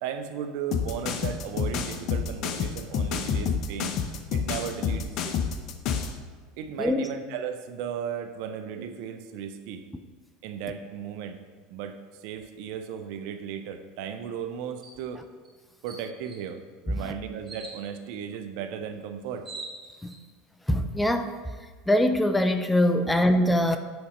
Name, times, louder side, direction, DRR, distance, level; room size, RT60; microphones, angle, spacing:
voice 1, 0.0-3.9 4.3-5.4 6.6-9.8 10.4-11.4 11.7-15.2 15.8-19.5 23.0-23.1, right 8 dB, 65° right, 0.6 m, -36 dB
sound 1, 0.7-6.2, left 6 dB, 55° left, 0.6 m, -28 dB
sound 2, 14.8-15.0 15.4-15.5 15.9-16.4 17.5-17.8 18.9-19.0 19.2-20.2, right 3 dB, 30° right, 2.4 m, -42 dB
voice 2, 20.7-21.3 21.9-23.8, left 1 dB, 5° left, 0.5 m, -23 dB
7.8 x 4.1 x 5.3 m
hypercardioid pair, 85°, 0 cm